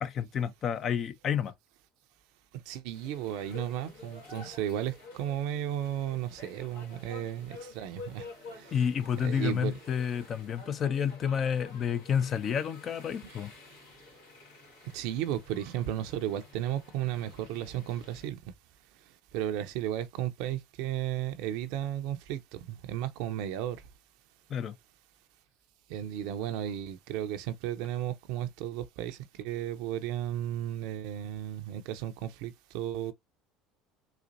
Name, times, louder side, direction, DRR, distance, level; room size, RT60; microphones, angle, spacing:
voice 1, 0.0-1.5 8.7-13.5 24.5-24.8, left 7 dB, 45° left, 0.5 m, -30 dB
voice 2, 2.7-8.3 8.6-8.7 9.2-9.7 14.9-18.4 19.3-23.8 25.9-33.1, right 11 dB, 65° right, 0.6 m, -34 dB
sound 1, 2.9-18.3, left 3 dB, 85° left, 2.0 m, -50 dB
4.2 x 2.5 x 2.5 m
hypercardioid pair, 70°, 0 cm